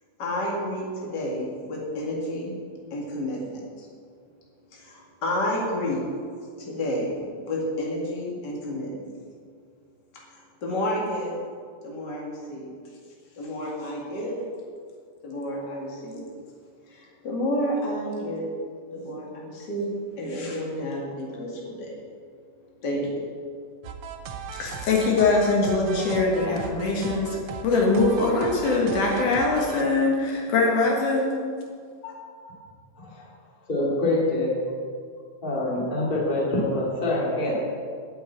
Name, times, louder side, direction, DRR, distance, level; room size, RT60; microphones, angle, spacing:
voice 1, 0.2-2.5 2.9-3.9 4.7-6.0 6.6-9.1 10.1-11.4 11.8-12.7 13.3-14.4 15.2-16.3 16.8-18.6 18.9-22.0 22.8-23.3, equal, 35° left, -2 dB, 2.5 m, -30 dB
sound 1, 23.8-29.8, right 6 dB, 75° right, 1.3 m, -37 dB
voice 2, 24.5-31.3 32.0-32.1, left 3 dB, 75° left, -1 dB, 3.3 m, -22 dB
voice 3, 33.7-34.5 35.4-37.5, left 2 dB, 15° left, -4 dB, 2.2 m, -25 dB
8.7 x 8.1 x 9.2 m, 2.1 s
omnidirectional pair, 3.7 m